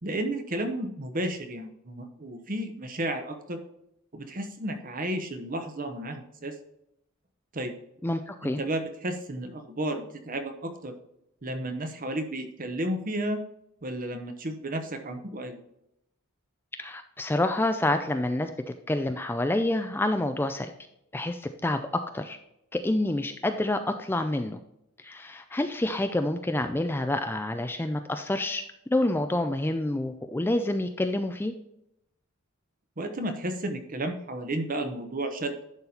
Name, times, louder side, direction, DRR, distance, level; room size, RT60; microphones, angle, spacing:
voice 1, 0.0-3.6 4.1-6.5 7.5-7.7 8.4-10.9 11.4-13.4 13.8-15.6 33.0-35.6, right 1 dB, 40° right, 6 dB, 1.0 m, -32 dB
voice 2, 8.0-8.6 16.8-18.5 18.9-20.7 21.1-22.4 22.7-24.6 25.0-28.6 28.9-31.5, left 1 dB, 10° left, 7 dB, 0.4 m, -28 dB
11.0 x 4.1 x 4.3 m, 0.81 s
head